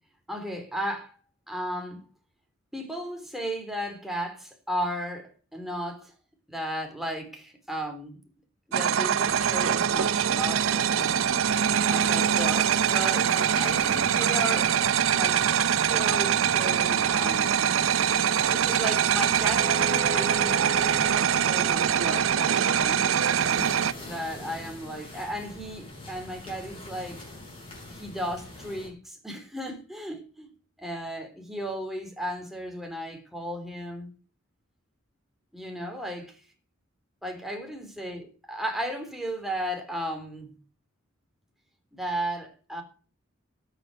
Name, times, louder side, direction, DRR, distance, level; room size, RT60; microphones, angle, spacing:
voice 1, 0.3-1.2 1.5-2.0 2.7-6.1 6.5-8.2 8.7-11.3 11.9-14.7 15.1-17.7 18.5-20.7 21.3-23.1 24.1-27.3 27.9-30.5 30.8-34.1 35.5-36.4 37.2-40.6 41.9-42.8, equal, ahead, 3.6 m, -35 dB
sound 1, 8.7-23.9, right 8 dB, 90° right, 0.5 m, -23 dB
sound 2, 9.2-28.9, left 1 dB, 25° left, 7.2 m, -42 dB
sound 3, 19.6-24.7, right 1 dB, 25° right, 1.1 m, -39 dB
12.5 x 8.1 x 7.8 m
head